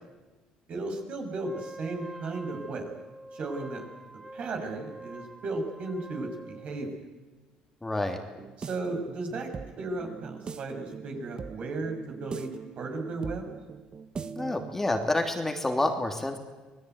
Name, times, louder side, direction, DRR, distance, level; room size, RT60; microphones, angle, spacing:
voice 1, 0.7-2.9 3.3-3.8 4.3-6.9 8.6-13.5, right 2 dB, 55° right, 4 dB, 6.6 m, -35 dB
Wind instrument woodwind instrument, 1.4-7.0, right 2 dB, 20° right, 4.7 m, -45 dB
voice 2, 7.8-8.2 14.4-16.4, left 2 dB, 15° left, 4 dB, 3.0 m, -28 dB
sound 1, 8.3-14.8, right 5 dB, 35° right, 1.5 m, -41 dB
26.0 x 19.0 x 9.5 m, 1.2 s
supercardioid pair, 90°, 3 cm